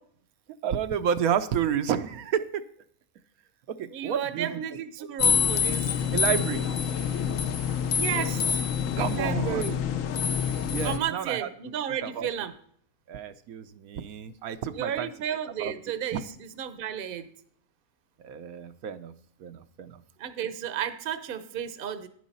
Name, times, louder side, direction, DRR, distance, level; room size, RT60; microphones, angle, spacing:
voice 1, 0.6-2.6 3.7-4.6 5.0-5.6 6.1-6.6 9.0-9.6 10.7-11.5 12.0-12.3 13.1-15.1 15.6-15.7 16.1-16.2 18.2-19.1 19.4-20.0, right 8 dB, 80° right, 9 dB, 1.1 m, -30 dB
voice 2, 3.9-6.0 7.9-8.6 9.0-9.8 10.8-12.5 14.8-16.2 16.6-17.3 20.2-22.1, right 9 dB, 45° right, 11 dB, 0.8 m, -33 dB
sound 1, 5.2-11.0, left 7 dB, 65° left, 1.0 m, -26 dB
11.0 x 9.4 x 4.1 m, 0.63 s
omnidirectional pair, 1.5 m